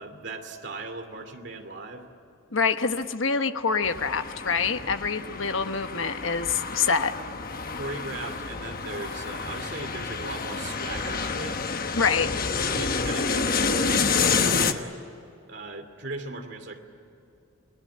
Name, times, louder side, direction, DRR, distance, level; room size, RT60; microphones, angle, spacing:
voice 1, 0.0-2.0 7.8-11.7 12.7-14.9 15.5-16.8, right 2 dB, 55° right, 5 dB, 2.7 m, -37 dB
voice 2, 2.5-7.1 12.0-12.3, left 5 dB, 70° left, 8 dB, 1.2 m, -26 dB
sound 1, 3.8-14.7, left 5 dB, 45° left, 1.2 m, -29 dB
28.5 x 19.5 x 8.7 m, 2.7 s
head